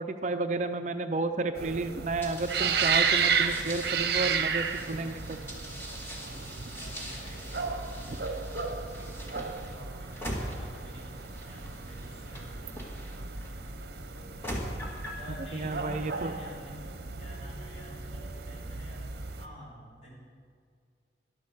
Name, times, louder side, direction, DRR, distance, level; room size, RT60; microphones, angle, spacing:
voice 1, 0.0-5.4 8.1-8.2 15.5-16.3, right 3 dB, 40° right, 8 dB, 0.5 m, -32 dB
sound 1, 1.2-18.9, right 1 dB, 65° left, 3.2 m, -55 dB
sound 2, 1.5-19.4, right 5 dB, 60° right, 0.9 m, -33 dB
sound 3, 2.2-13.5 14.1-15.3, equal, 15° left, 2.1 m, -42 dB
voice 2, 6.2-12.9 15.1-16.9 17.2-19.1 19.4-20.2, equal, 35° left, -5 dB, 3.9 m, -49 dB
12.5 x 11.5 x 6.7 m, 2.1 s
head